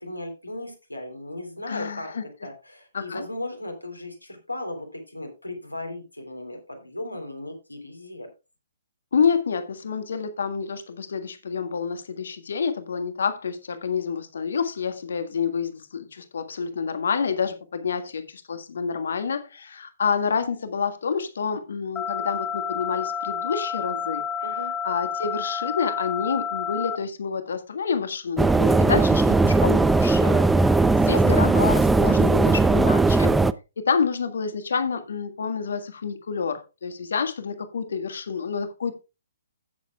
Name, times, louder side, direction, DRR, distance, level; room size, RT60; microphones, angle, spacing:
voice 1, 0.0-2.1 2.4-8.3 24.4-24.7 30.2-30.5, left 1 dB, 90° left, 3.4 m, -36 dB
voice 2, 1.7-2.2 2.9-3.2 9.1-24.2 24.8-30.4 31.0-33.3 33.8-38.9, left 6 dB, 60° left, 1.6 m, -28 dB
sound 1, 22.0-27.0, left 7 dB, 15° left, 0.9 m, -30 dB
sound 2, 28.4-33.5, right 3 dB, 5° right, 0.4 m, -18 dB
16.0 x 7.3 x 2.3 m
figure-of-eight pair, 125°, 0 cm